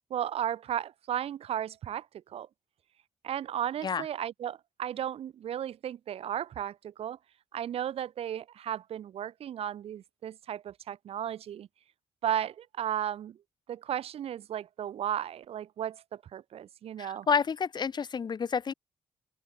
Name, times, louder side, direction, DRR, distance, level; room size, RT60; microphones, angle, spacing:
voice 1, 0.1-2.5 3.2-7.2 7.5-11.7 12.2-13.4 13.7-17.3, right 10 dB, 75° right, 5.4 m, -35 dB
voice 2, 17.0-18.7, left 6 dB, 45° left, 2.9 m, -29 dB
open air
cardioid pair, 105°, 10 cm